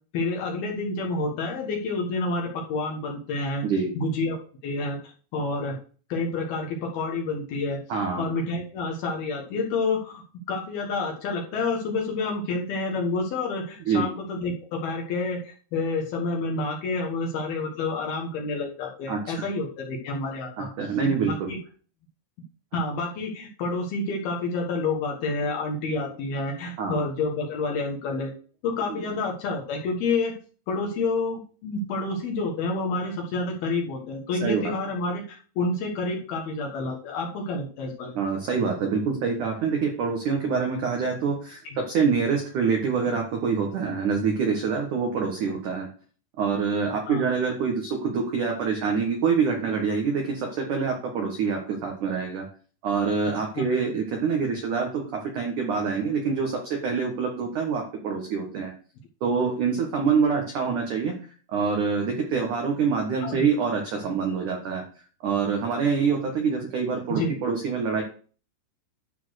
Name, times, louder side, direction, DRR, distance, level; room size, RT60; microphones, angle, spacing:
voice 1, 0.1-3.6 4.0-4.4 4.6-5.8 6.1-7.8 8.2-10.2 10.5-20.7 21.2-21.6 22.7-28.3 28.6-30.4 30.7-38.2 41.6-41.8 47.1-47.2 53.5-53.6 63.2-63.4 67.1-67.3, left 3 dB, 65° left, 0 dB, 2.9 m, -29 dB
voice 2, 7.9-8.3 13.9-14.1 19.1-19.3 20.6-21.5 26.8-27.0 34.4-34.7 38.2-45.9 46.4-52.5 52.8-58.7 59.2-61.1 61.5-64.8 65.2-68.0, right 5 dB, 70° right, 2 dB, 1.9 m, -26 dB
12.0 x 4.3 x 6.4 m, 0.41 s
omnidirectional pair, 5.6 m